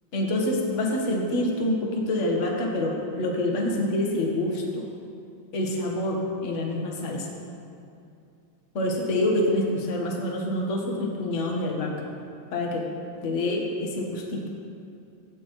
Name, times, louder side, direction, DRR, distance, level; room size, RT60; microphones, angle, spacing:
voice 1, 0.1-4.8 5.5-7.3 8.7-12.1 12.5-12.8 13.2-14.5, left 1 dB, 40° left, 0 dB, 1.5 m, -26 dB
16.0 x 9.5 x 3.1 m, 2.5 s
omnidirectional pair, 2.3 m